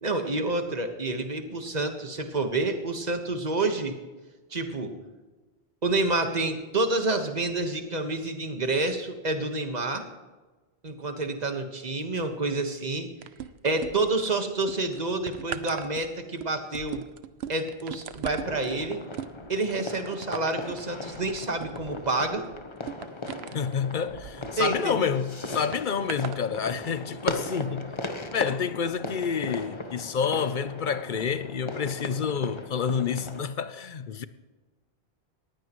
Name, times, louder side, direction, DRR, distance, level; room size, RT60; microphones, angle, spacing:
voice 1, 0.0-4.0 4.5-4.9 5.8-10.0 10.8-13.1 13.6-17.0 17.5-19.0 19.5-22.4 24.5-25.1, right 2 dB, 40° right, 1.6 m, -28 dB
sound 1, 13.2-14.3 14.6-25.0 25.7-26.4 27.1-27.3, right 9 dB, 80° right, 0.9 m, -40 dB
sound 2, 18.4-33.4, left 2 dB, 30° left, 1.0 m, -38 dB
voice 2, 23.5-27.9 28.3-34.2, left 6 dB, 55° left, 0.8 m, -29 dB
19.5 x 15.5 x 3.1 m
omnidirectional pair, 1.1 m